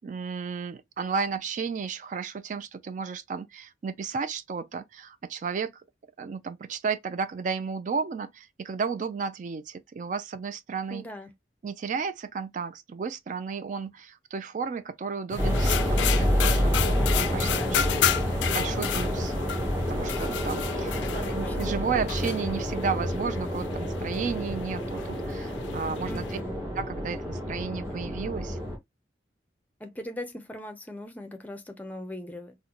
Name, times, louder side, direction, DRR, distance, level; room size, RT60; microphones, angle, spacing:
voice 1, 0.0-5.8 6.2-11.1 11.6-26.2 26.8-28.6, right 5 dB, 40° right, 0.3 m, -33 dB
voice 2, 10.9-11.3 21.0-21.9 26.1-26.7 29.8-32.6, left 1 dB, 10° left, 0.5 m, -40 dB
sound 1, 15.3-26.4, left 9 dB, 75° left, 0.4 m, -32 dB
sound 2, 15.4-28.8, equal, 15° right, 1.3 m, -28 dB
3.9 x 2.1 x 2.9 m
head